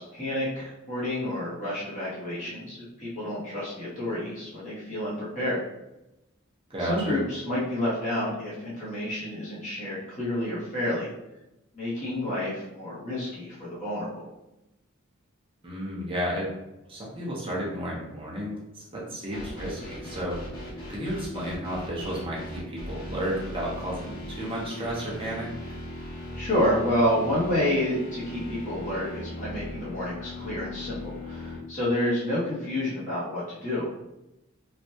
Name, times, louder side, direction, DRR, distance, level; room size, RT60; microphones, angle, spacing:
voice 1, 0.0-5.6 6.8-11.1 11.7-14.3 26.1-31.0 31.2-33.9, left 1 dB, 35° left, -9 dB, 1.1 m, -29 dB
voice 2, 6.7-7.2 15.6-16.5 16.9-25.6, equal, 25° right, -4 dB, 0.7 m, -33 dB
sound 1, 19.3-31.6, left 1 dB, 90° left, 1.2 m, -39 dB
3.2 x 2.4 x 2.7 m, 0.94 s
head